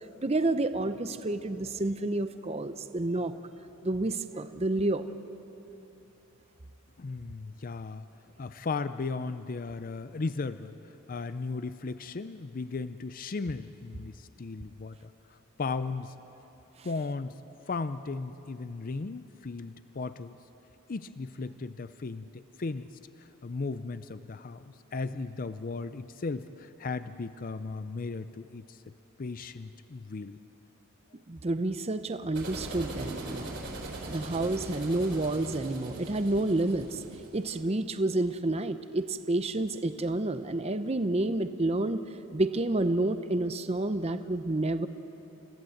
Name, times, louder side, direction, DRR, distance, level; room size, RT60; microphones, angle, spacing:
voice 1, 0.2-3.3 3.8-5.1 31.3-33.5 34.1-37.0 37.3-42.0 42.3-44.9, right 2 dB, 30° right, 10 dB, 0.7 m, -29 dB
voice 2, 7.0-8.0 8.4-10.7 11.1-16.1 16.8-17.3 17.7-20.4 20.9-22.9 23.2-28.8 29.2-30.4 31.1-31.2, left 4 dB, 40° left, 12 dB, 0.5 m, -36 dB
sound 1, 32.3-37.6, right 2 dB, 60° right, 4.2 m, -41 dB
29.0 x 16.0 x 7.9 m, 3.0 s
head